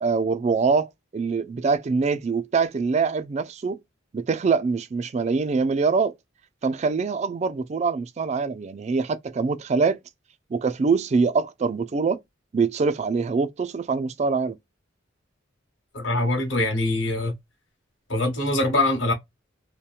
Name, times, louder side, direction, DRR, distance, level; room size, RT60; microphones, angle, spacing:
voice 1, 0.0-3.8 4.1-6.1 6.6-10.0 10.5-12.2 12.5-14.6, right 4 dB, 35° right, 0.3 m, -24 dB
voice 2, 15.9-17.3 18.1-19.1, left 2 dB, 75° left, 1.2 m, -23 dB
2.8 x 2.1 x 2.3 m
head